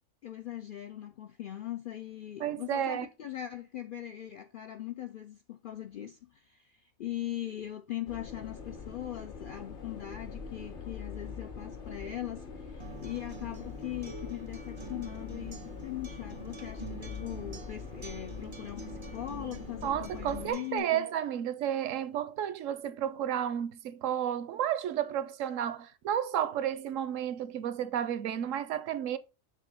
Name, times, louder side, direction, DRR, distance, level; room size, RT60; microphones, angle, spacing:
voice 1, 0.2-21.1, left 12 dB, 65° left, 0.5 m, -40 dB
voice 2, 2.4-3.1 19.8-29.2, right 10 dB, 75° right, 0.9 m, -32 dB
sound 1, 8.1-20.5, left 5 dB, 45° left, 0.9 m, -43 dB
Acoustic guitar, 12.8-20.8, right 7 dB, 35° right, 0.4 m, -48 dB
6.7 x 3.1 x 4.9 m
omnidirectional pair, 1.4 m